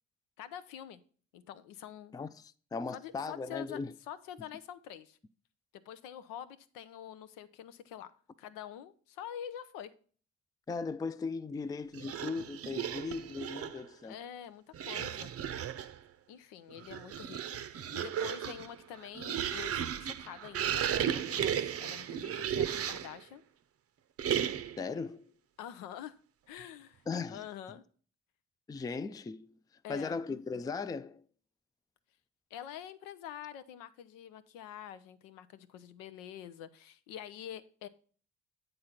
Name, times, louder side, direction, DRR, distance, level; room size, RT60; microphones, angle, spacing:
voice 1, 0.4-1.0 1.3-2.2 2.9-3.8 4.1-5.2 5.7-9.9 14.0-15.3 16.3-17.4 17.7-23.4 25.6-26.2 26.5-27.0 27.3-27.8 29.8-30.2 32.5-37.9, left 10 dB, 70° left, 0.6 m, -46 dB
voice 2, 2.1-3.9 10.7-14.2 24.7-25.3 27.1-27.4 28.7-29.5 29.9-31.2, left 4 dB, 10° left, 0.4 m, -38 dB
sound 1, 11.9-13.9 14.7-16.0 16.7-23.2 24.2-24.9, right 9 dB, 40° right, 0.6 m, -35 dB
8.7 x 3.9 x 5.7 m
hypercardioid pair, 40°, 34 cm